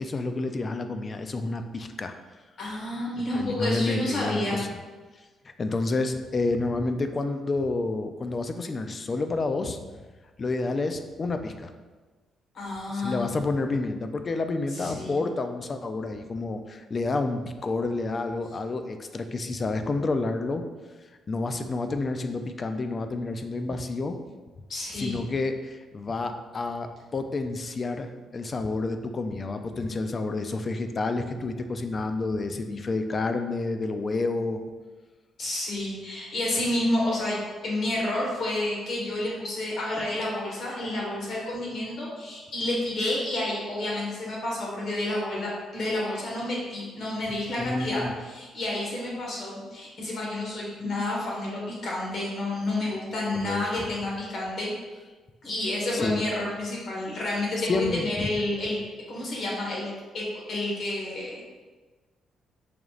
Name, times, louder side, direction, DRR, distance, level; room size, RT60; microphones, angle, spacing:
voice 1, 0.0-2.1 3.3-4.8 5.6-9.8 10.4-11.7 12.9-20.6 21.3-24.2 24.9-34.6 47.6-48.1 53.4-53.7 55.9-56.2 57.7-58.3, left 3 dB, 35° left, 7 dB, 0.3 m, -29 dB
voice 2, 2.6-4.6 12.5-13.3 14.7-15.2 24.7-25.2 35.4-37.4 37.6-54.7 55.4-58.8 59.1-61.6, left 1 dB, 60° left, -3 dB, 1.3 m, -30 dB
5.0 x 2.9 x 2.4 m, 1.3 s
cardioid pair, 90°, 0 cm